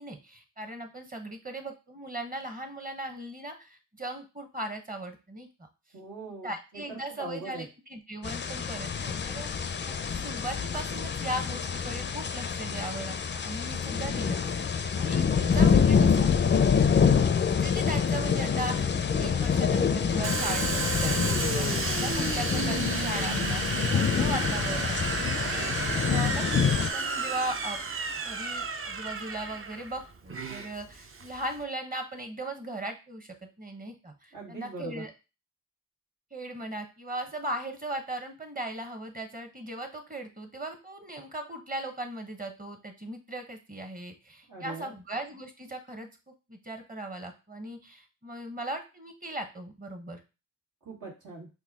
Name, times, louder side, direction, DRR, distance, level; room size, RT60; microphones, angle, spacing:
voice 1, 0.0-5.5 6.4-16.3 17.0-27.8 28.2-35.1 36.3-50.2, right 1 dB, 25° right, 5 dB, 1.0 m, -38 dB
voice 2, 5.9-7.6 21.1-21.6 34.3-35.0 44.5-44.9 50.8-51.5, right 2 dB, 80° right, -4 dB, 1.6 m, -41 dB
sound 1, 8.2-26.9, left 6 dB, 35° left, 0.4 m, -26 dB
Domestic sounds home sounds, 20.2-31.6, right 4 dB, 40° right, 0.6 m, -32 dB
4.2 x 2.3 x 3.5 m, 0.29 s
cardioid pair, 50°, 31 cm